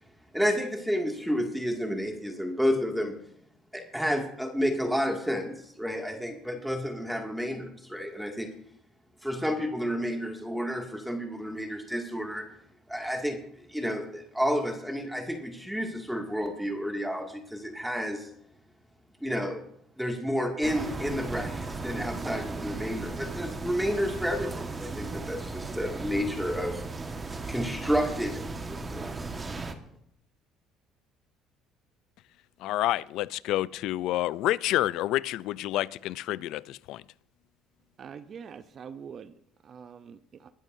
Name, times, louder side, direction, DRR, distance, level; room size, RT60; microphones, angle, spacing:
voice 1, 0.3-3.2 3.7-8.5 9.2-12.5 12.9-13.4 13.7-18.3 19.2-19.6 20.0-26.8 27.5-29.4, equal, ahead, 2.3 m, -30 dB
sound 1, 20.6-29.7, right 3 dB, 25° right, 1.5 m, -36 dB
voice 2, 32.6-37.0, left 15 dB, 70° left, 0.4 m, -29 dB
voice 3, 38.0-39.3 39.6-40.5, right 7 dB, 45° right, 0.7 m, -44 dB
21.5 x 12.5 x 2.7 m
supercardioid pair, 85°, 0 cm